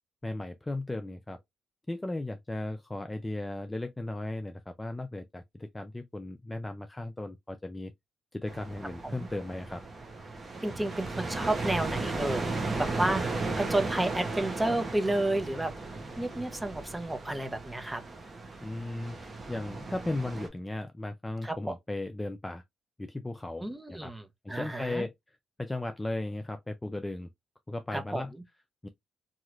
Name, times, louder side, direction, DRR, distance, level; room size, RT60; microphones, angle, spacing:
voice 1, 0.2-1.4 1.9-7.9 8.3-9.8 18.6-22.6 23.0-24.1 24.4-25.1 25.6-27.3 27.7-28.3 28.8-28.9, left 2 dB, 15° left, 0.4 m, -36 dB
sound 1, 8.5-20.5, right 3 dB, 35° right, 1.0 m, -36 dB
voice 2, 10.6-12.5 12.8-15.7 16.2-18.0 21.4-21.7 23.6-25.1 27.9-28.4, right 1 dB, 10° right, 0.7 m, -31 dB
3.0 x 2.8 x 2.4 m
cardioid pair, 90°, 0 cm